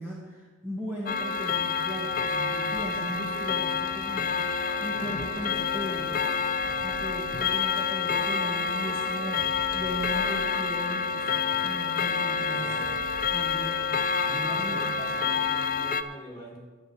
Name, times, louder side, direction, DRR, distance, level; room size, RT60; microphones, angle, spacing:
voice 1, 0.0-4.4 4.8-6.3 6.8-12.8 13.3-13.9 14.3-15.0, equal, 10° right, -5 dB, 1.7 m, -37 dB
Clock, 1.1-16.0, left 5 dB, 45° left, 0.6 m, -28 dB
sound 1, 5.3-11.2 12.8-13.8, equal, 50° right, 1.7 m, -48 dB
voice 2, 12.5-13.0 14.2-16.6, equal, 20° left, -3 dB, 4.4 m, -42 dB
10.0 x 9.4 x 6.8 m, 1.3 s
head